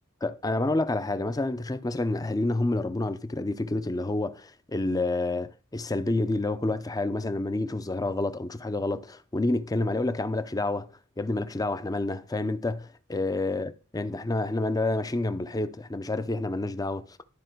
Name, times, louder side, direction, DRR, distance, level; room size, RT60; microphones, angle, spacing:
voice 1, 0.2-10.9 11.2-17.0, left 2 dB, 15° left, 0.6 m, -28 dB
12.5 x 4.2 x 4.6 m
head